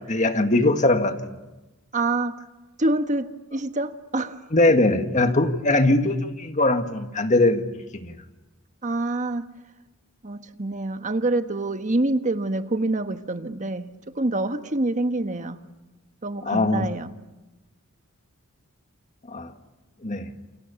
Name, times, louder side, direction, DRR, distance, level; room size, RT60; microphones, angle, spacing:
voice 1, 0.1-1.2 4.5-7.7 7.9-8.1 16.5-16.9 19.3-19.5 20.0-20.3, left 2 dB, 35° left, 1.8 m, -21 dB
voice 2, 1.9-2.4 2.8-4.4 5.3-5.4 8.8-9.5 10.2-13.9 14.1-15.6 16.2-17.1, right 2 dB, 35° right, 1.3 m, -26 dB
29.0 x 29.0 x 7.0 m
head